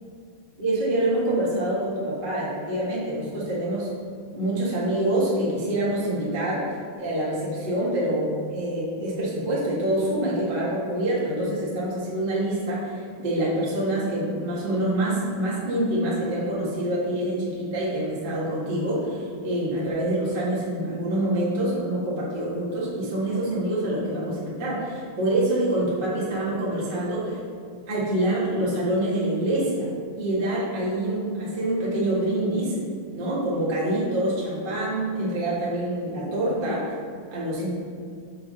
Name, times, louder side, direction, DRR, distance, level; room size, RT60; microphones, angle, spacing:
voice 1, 0.6-3.9 4.3-27.4 27.9-29.9 30.2-32.8 33.1-36.8 37.3-37.7, right 1 dB, 90° right, -7 dB, 0.4 m, -26 dB
6.0 x 4.7 x 6.5 m, 2.2 s
omnidirectional pair, 4.2 m